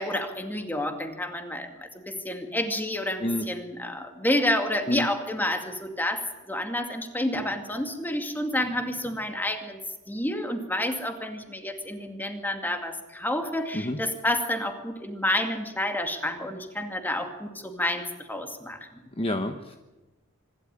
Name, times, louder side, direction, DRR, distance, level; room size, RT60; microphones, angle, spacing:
voice 1, 0.0-9.8 10.1-18.9, left 1 dB, 10° left, 5 dB, 2.2 m, -29 dB
voice 2, 19.2-19.8, left 1 dB, 25° left, 6 dB, 1.0 m, -28 dB
25.5 x 12.0 x 10.0 m, 1.1 s
head